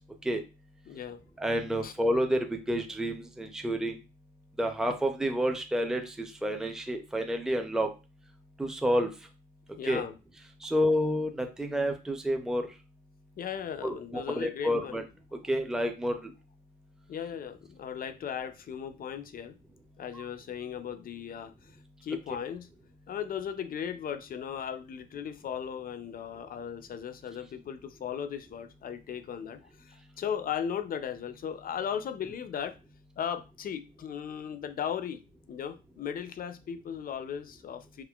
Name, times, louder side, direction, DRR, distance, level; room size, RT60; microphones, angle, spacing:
voice 1, 0.9-1.2 1.8-1.9 9.8-10.2 13.4-15.0 17.1-19.6 20.0-21.7 22.0-22.7 23.1-32.8 33.2-35.2 35.5-38.0, left 8 dB, 45° left, 0.5 m, -37 dB
voice 2, 1.4-4.0 4.6-7.9 8.6-9.1 9.8-10.0 10.6-12.7 13.8-15.0 15.5-16.3 20.1-20.2, equal, 5° right, 0.5 m, -29 dB
3.7 x 2.5 x 2.3 m
cardioid pair, 90°, 20 cm